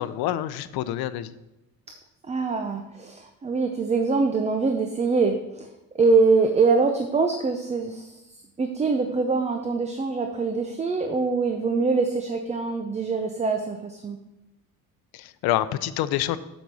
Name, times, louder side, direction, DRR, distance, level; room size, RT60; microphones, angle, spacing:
voice 1, 0.0-1.3 15.1-16.4, left 13 dB, 85° left, 14 dB, 0.7 m, -27 dB
voice 2, 2.3-8.2 8.6-14.2, right 4 dB, 20° right, 6 dB, 0.6 m, -24 dB
7.6 x 5.4 x 6.7 m, 0.95 s
cardioid pair, 135°, 37 cm